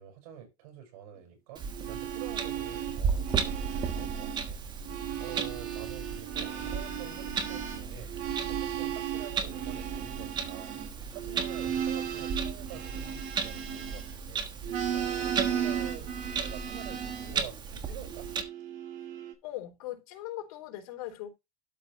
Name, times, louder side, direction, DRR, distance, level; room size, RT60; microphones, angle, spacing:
voice 1, 0.0-8.1 8.5-10.8 11.1-14.5 14.9-16.1 16.4-18.3, right 9 dB, 75° right, 5.7 m, -47 dB
Clock, 1.5-18.4, right 6 dB, 25° right, 1.4 m, -36 dB
sound 1, 1.7-4.5 4.8-14.3 14.6-17.4 18.1-19.3, right 9 dB, 45° right, 2.3 m, -36 dB
voice 2, 19.4-21.3, left 14 dB, 70° left, 3.8 m, -40 dB
12.5 x 5.4 x 3.1 m
supercardioid pair, 150°, 19 cm